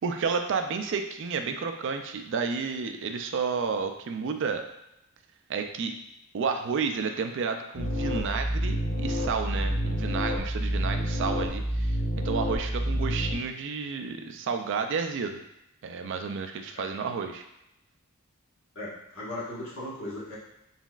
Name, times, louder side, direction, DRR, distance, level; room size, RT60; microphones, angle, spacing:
voice 1, 0.0-4.6 5.5-5.9 6.3-12.0 12.2-15.4 15.8-17.4, right 5 dB, 55° right, 6 dB, 0.4 m, -31 dB
sound 1, 7.7-13.3, equal, 45° left, 1.0 m, -28 dB
voice 2, 18.7-20.4, left 1 dB, 60° left, -6 dB, 1.4 m, -37 dB
4.1 x 4.0 x 2.4 m, 0.86 s
head